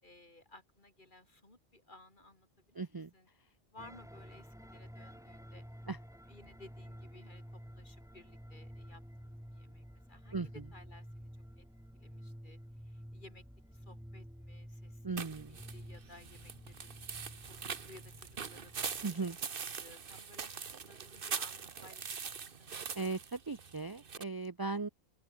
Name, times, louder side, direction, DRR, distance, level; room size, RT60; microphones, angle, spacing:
voice 1, 0.0-3.3 3.7-5.7 6.3-11.3 11.6-11.7 11.9-12.6 12.8-13.4 13.7-15.2 15.4-22.3 22.6-22.7, left 2 dB, 50° left, 3.7 m, -58 dB
voice 2, 2.8-3.1 5.9-6.0 10.3-10.5 15.0-15.6 19.0-19.4 23.0-24.9, right 4 dB, 25° right, 0.6 m, -37 dB
sound 1, 3.8-19.0, equal, 5° right, 4.1 m, -51 dB
sound 2, 15.2-24.2, right 6 dB, 60° right, 1.3 m, -43 dB
open air
omnidirectional pair, 1.1 m